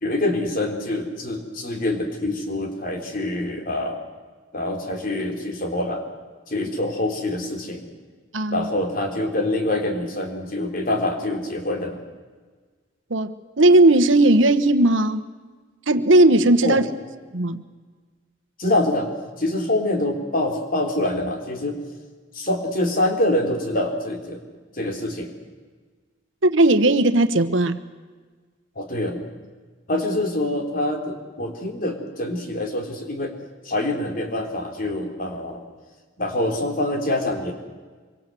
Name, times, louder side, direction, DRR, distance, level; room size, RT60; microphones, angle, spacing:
voice 1, 0.0-4.0 4.5-6.0 6.5-7.9 8.5-12.0 16.6-16.8 18.6-19.1 19.4-21.8 22.3-24.4 24.8-25.3 28.8-29.2 29.9-33.3 33.6-35.6 36.2-37.5, left 1 dB, 45° left, 3 dB, 3.5 m, -25 dB
voice 2, 8.3-8.7 13.1-15.2 15.9-16.9 17.3-17.6 26.4-27.8, right 2 dB, 80° right, 11 dB, 1.3 m, -17 dB
25.0 x 24.0 x 7.8 m, 1.4 s
head